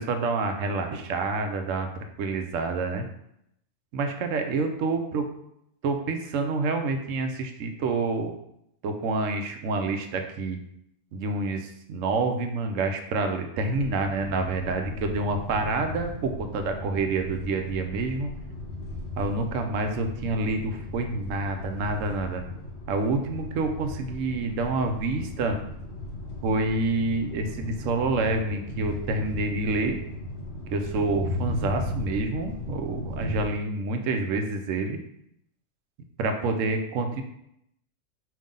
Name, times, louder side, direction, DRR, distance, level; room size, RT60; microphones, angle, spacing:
voice 1, 0.0-1.9 2.2-3.0 3.9-5.2 5.8-8.3 8.8-10.6 11.1-18.3 19.2-22.4 22.9-25.6 26.4-30.0 30.7-35.0 36.2-37.2, right 3 dB, 80° right, 6 dB, 1.0 m, -28 dB
sound 1, 13.7-33.5, left 1 dB, 60° left, 1.2 m, -36 dB
5.3 x 2.7 x 3.7 m, 0.77 s
omnidirectional pair, 1.3 m